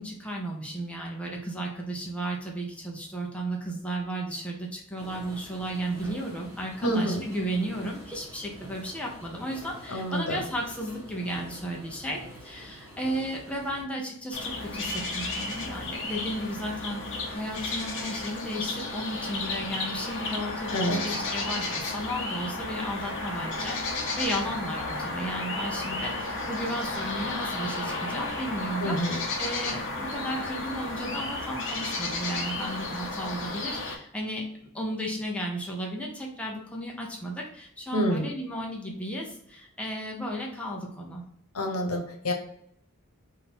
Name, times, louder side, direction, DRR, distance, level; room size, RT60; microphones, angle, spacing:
voice 1, 0.0-34.4 34.7-41.2, right 1 dB, 5° left, -2 dB, 0.7 m, -34 dB
sound 1, 5.0-13.8, equal, 15° right, 1.3 m, -47 dB
voice 2, 6.8-7.3 9.9-10.4 20.7-21.1 28.8-29.2 37.9-38.3 41.5-42.3, equal, 90° left, 3 dB, 1.0 m, -28 dB
sound 2, 14.3-34.0, left 2 dB, 60° left, 0.8 m, -33 dB
3.7 x 2.7 x 4.3 m, 0.70 s
head